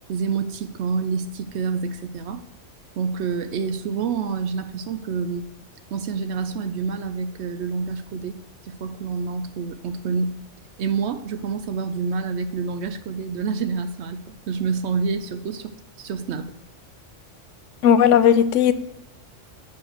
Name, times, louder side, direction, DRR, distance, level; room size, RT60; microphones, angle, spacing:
voice 1, 0.1-2.4 3.0-5.5 5.9-10.4 10.8-15.7 16.0-16.5, right 5 dB, 70° right, 10 dB, 0.8 m, -27 dB
voice 2, 17.8-18.7, left 9 dB, 85° left, 13 dB, 0.9 m, -15 dB
7.0 x 4.7 x 6.3 m, 0.83 s
omnidirectional pair, 1.3 m